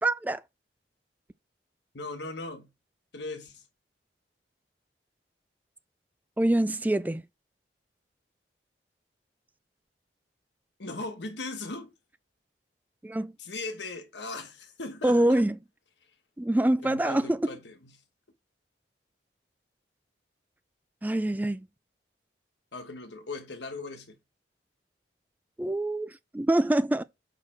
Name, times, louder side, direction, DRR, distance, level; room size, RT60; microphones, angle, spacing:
voice 1, 0.0-0.4 6.4-7.2 13.0-13.3 15.0-15.5 16.4-17.5 21.0-21.7 25.6-27.0, right 1 dB, 10° right, 0.3 m, -25 dB
voice 2, 1.9-2.7 3.1-3.6 10.8-11.9 13.4-15.4 16.8-17.9 22.7-24.2, left 3 dB, 75° left, 1.3 m, -38 dB
6.6 x 5.9 x 4.4 m
head